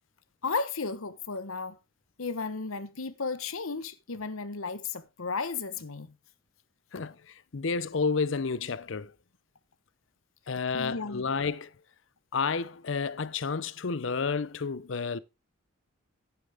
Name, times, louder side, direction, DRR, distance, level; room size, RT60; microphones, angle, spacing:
voice 1, 0.4-1.8 2.2-6.1 10.7-11.3, left 4 dB, 80° left, 1.1 m, -34 dB
voice 2, 6.9-9.1 10.5-11.7 12.3-15.2, left 5 dB, 60° left, 0.6 m, -31 dB
11.5 x 9.1 x 3.5 m
head